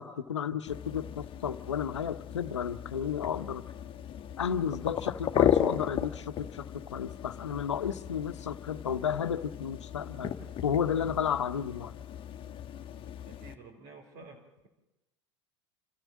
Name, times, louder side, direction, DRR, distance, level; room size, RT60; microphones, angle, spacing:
voice 1, 0.0-3.6 4.4-10.3 10.6-11.9, left 8 dB, 85° left, 10 dB, 1.0 m, -32 dB
sound 1, 0.7-13.5, left 9 dB, 35° left, 1.4 m, -35 dB
voice 2, 13.2-14.7, right 4 dB, 55° right, 0 dB, 4.0 m, -51 dB
28.0 x 13.5 x 7.4 m, 0.97 s
hypercardioid pair, 85°, 15 cm